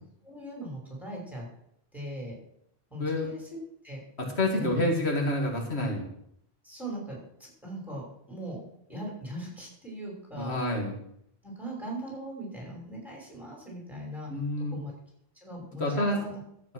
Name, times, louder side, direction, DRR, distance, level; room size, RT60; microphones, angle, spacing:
voice 1, 0.2-1.5 1.9-2.4 2.9-3.4 3.8-4.0 4.6-4.8 6.6-8.6 8.9-10.5 11.4-14.3 14.6-14.9 15.4-16.4, right 1 dB, ahead, -3 dB, 5.7 m, -39 dB
voice 2, 4.2-6.1 10.4-10.9 14.3-14.8 15.8-16.2, left 1 dB, 80° left, 0 dB, 2.5 m, -28 dB
12.5 x 8.7 x 6.3 m, 0.73 s
omnidirectional pair, 1.1 m